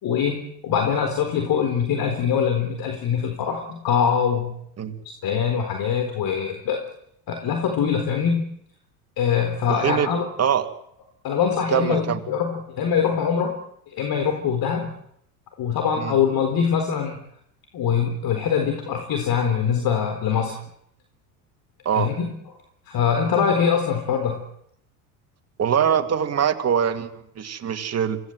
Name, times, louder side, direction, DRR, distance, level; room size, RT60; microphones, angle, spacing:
voice 1, 0.0-4.5 5.0-6.8 7.3-8.5 9.2-10.3 11.2-13.5 13.9-14.9 15.6-17.2 17.7-20.6 21.9-22.3 22.9-24.4, left 7 dB, 50° left, 5 dB, 4.3 m, -23 dB
voice 2, 9.7-10.1 10.4-10.7 11.7-12.2 16.0-16.2 21.8-22.1 25.6-28.2, right 8 dB, 30° right, 6 dB, 2.8 m, -23 dB
26.0 x 17.5 x 8.0 m, 0.72 s
hypercardioid pair, 85°, 47 cm